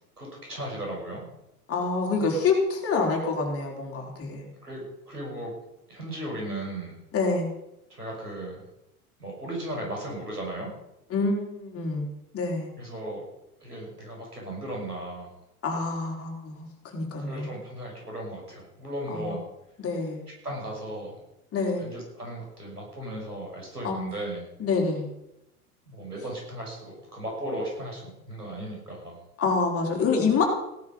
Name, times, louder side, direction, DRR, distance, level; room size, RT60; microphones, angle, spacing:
voice 1, 0.2-1.2 4.6-5.5 5.9-7.0 7.9-8.6 9.2-10.7 12.8-13.2 13.6-15.3 17.2-19.4 20.4-21.2 21.8-24.5 25.9-29.2, right 1 dB, 90° right, -2 dB, 6.5 m, -36 dB
voice 2, 1.7-4.5 7.1-7.5 11.1-12.1 12.3-12.7 15.6-17.5 19.1-19.4 19.8-20.2 21.5-21.8 23.8-24.1 24.6-25.1 29.4-30.4, left 4 dB, 30° left, 0 dB, 4.5 m, -27 dB
17.0 x 10.5 x 5.5 m, 0.87 s
figure-of-eight pair, 80°, 45 cm